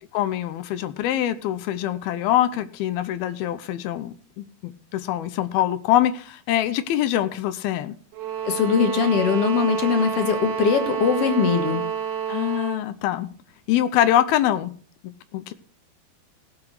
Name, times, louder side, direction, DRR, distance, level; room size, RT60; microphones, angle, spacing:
voice 1, 0.1-8.0 12.3-13.3 13.7-14.7 15.0-15.5, left 12 dB, 85° left, 12 dB, 2.3 m, -24 dB
sound 1, 8.1-12.9, right 8 dB, 85° right, 3.5 m, -28 dB
voice 2, 8.4-11.8, left 6 dB, 60° left, 6 dB, 1.6 m, -21 dB
17.5 x 5.9 x 6.4 m, 0.43 s
omnidirectional pair, 5.2 m